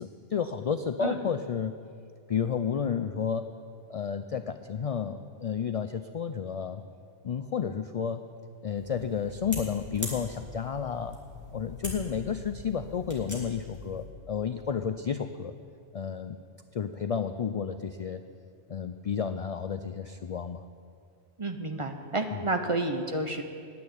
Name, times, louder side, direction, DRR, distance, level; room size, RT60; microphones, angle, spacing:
voice 1, 0.0-1.8 2.3-3.5 3.9-6.8 7.2-8.3 8.6-11.2 11.5-15.5 15.9-16.4 16.7-18.2 18.7-20.7 22.3-22.4, left 7 dB, 65° left, 10 dB, 0.3 m, -31 dB
sound 1, 8.7-14.1, left 1 dB, 15° right, 2.6 m, -42 dB
voice 2, 21.4-23.4, right 2 dB, 30° right, 5 dB, 0.9 m, -30 dB
10.5 x 9.5 x 9.6 m, 2.3 s
omnidirectional pair, 1.2 m